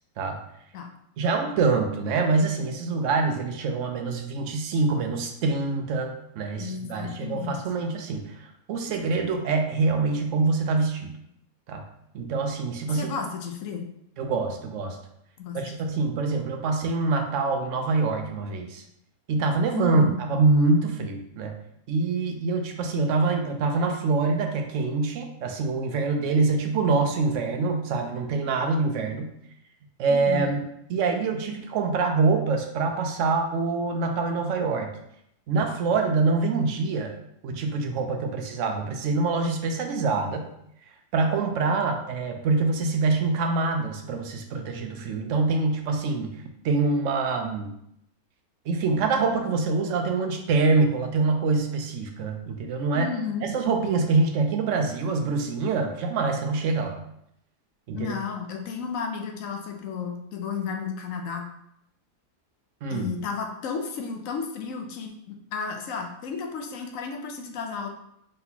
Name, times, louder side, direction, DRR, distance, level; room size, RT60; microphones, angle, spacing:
voice 1, 1.2-11.1 11.7-11.8 12.1-13.1 14.2-15.0 15.5-18.8 19.3-21.5 21.9-29.3 30.0-34.9 35.5-37.1 37.4-40.5 41.1-46.3 46.6-47.7 48.7-53.1 53.4-57.0 57.9-58.1 62.8-63.1, right 3 dB, 65° right, 4 dB, 0.8 m, -25 dB
voice 2, 6.6-7.6 12.9-13.9 15.4-15.7 19.7-20.1 30.1-30.4 52.9-53.5 57.9-61.5 62.9-67.9, left 5 dB, 65° left, 3 dB, 0.9 m, -33 dB
3.9 x 3.9 x 2.8 m, 0.75 s
omnidirectional pair, 1.7 m